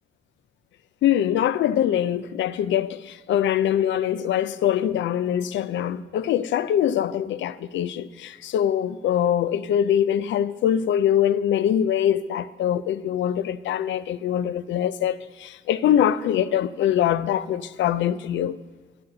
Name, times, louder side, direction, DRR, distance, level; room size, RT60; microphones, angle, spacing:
voice 1, 1.0-18.6, left 10 dB, 70° left, 0.5 m, -23 dB
12.5 x 12.0 x 3.9 m
cardioid pair, 90°, 20 cm